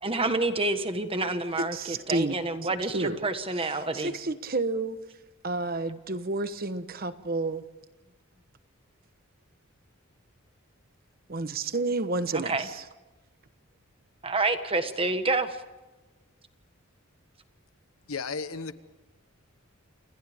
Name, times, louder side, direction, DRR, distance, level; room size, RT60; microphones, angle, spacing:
voice 1, 0.0-4.1 12.3-12.7 14.2-15.6, right 2 dB, 25° right, 1.4 m, -28 dB
voice 2, 1.6-2.4 2.9-3.3 3.5-5.0 5.4-7.6 11.3-12.8, right 2 dB, 45° right, 1.1 m, -30 dB
voice 3, 18.1-18.8, left 4 dB, 85° left, 1.2 m, -34 dB
29.0 x 28.5 x 3.6 m
head